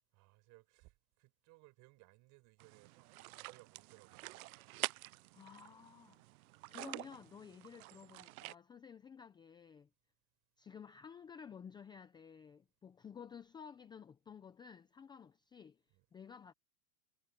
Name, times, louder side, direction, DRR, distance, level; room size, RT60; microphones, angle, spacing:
voice 1, 0.1-4.3 15.9-16.1, right 22 dB, 40° right, 6.5 m, -64 dB
sound 1, 2.6-8.5, right 20 dB, 70° right, 0.5 m, -47 dB
voice 2, 5.3-6.2 6.7-9.9 10.6-15.8 16.1-16.5, left 7 dB, 10° left, 0.6 m, -53 dB
supercardioid pair, 145°, 44 cm